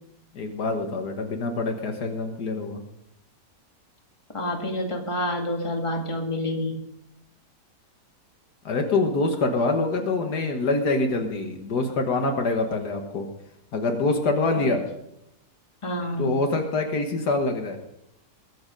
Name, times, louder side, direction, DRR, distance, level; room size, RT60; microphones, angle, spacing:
voice 1, 0.3-2.8 8.7-13.3 13.7-14.8 16.2-17.8, left 3 dB, 75° left, 4 dB, 1.9 m, -25 dB
voice 2, 4.3-6.8 14.6-14.7 15.8-16.3, left 1 dB, 20° left, 2 dB, 2.0 m, -28 dB
22.0 x 7.9 x 5.2 m, 0.82 s
omnidirectional pair, 1.7 m